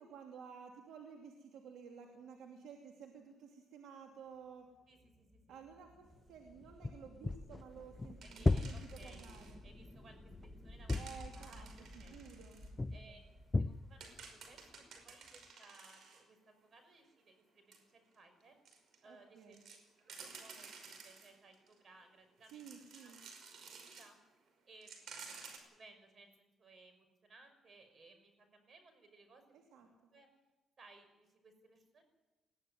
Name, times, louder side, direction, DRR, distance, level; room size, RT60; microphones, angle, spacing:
voice 1, 0.0-4.7 5.5-9.6 10.9-13.1 19.0-19.6 22.5-23.2 29.5-30.1, right 6 dB, 85° right, 1 dB, 2.7 m, -54 dB
sound 1, 4.6-14.8, left 1 dB, ahead, 2.1 m, -56 dB
voice 2, 4.9-5.6 8.2-9.2 9.6-10.2 10.6-11.0 11.3-12.2 12.9-13.2 13.6-18.6 19.0-22.7 23.0-23.1 23.8-24.2 24.7-25.4 25.7-30.3 30.8-32.0, right 3 dB, 45° right, 7 dB, 6.0 m, -62 dB
sound 2, 6.6-9.5 10.0-11.7 12.8-13.2 13.5-14.2, left 2 dB, 25° left, 0.6 m, -36 dB
sound 3, 8.2-9.5 10.9-12.7 13.3-13.4 13.7-16.2 17.0-17.1 17.7-17.8 18.4-19.0 19.5-21.8 22.4-24.1 24.5-24.6 24.8-25.6, right 5 dB, 70° right, 5.4 m, -54 dB
21.0 x 14.5 x 9.6 m, 1.1 s
cardioid pair, 90°, 0 cm